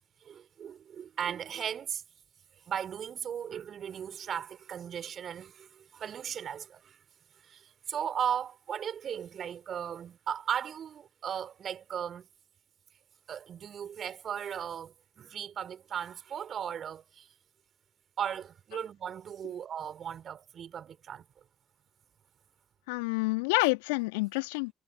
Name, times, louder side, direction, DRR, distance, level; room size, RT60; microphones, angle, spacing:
voice 1, 0.2-2.0 2.7-7.0 7.4-12.3 13.3-17.3 18.2-21.2, right 8 dB, 55° right, 4.4 m, -37 dB
voice 2, 22.9-24.7, left 26 dB, 75° left, 1.4 m, -28 dB
figure-of-eight pair, 45°, 0 cm